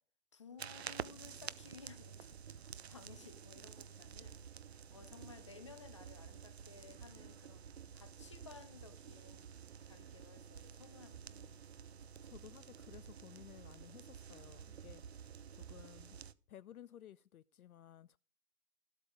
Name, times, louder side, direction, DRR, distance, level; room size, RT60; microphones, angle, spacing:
voice 1, 0.3-4.4 4.9-7.6 7.9-9.5 9.8-11.7, left 5 dB, 20° left, 0.5 m, -57 dB
sound 1, 0.6-16.3, right 8 dB, 45° right, 0.5 m, -51 dB
voice 2, 12.2-16.2 16.5-18.2, left 11 dB, 65° left, 0.5 m, -57 dB
13.0 x 8.2 x 4.9 m
hypercardioid pair, 145°, 47 cm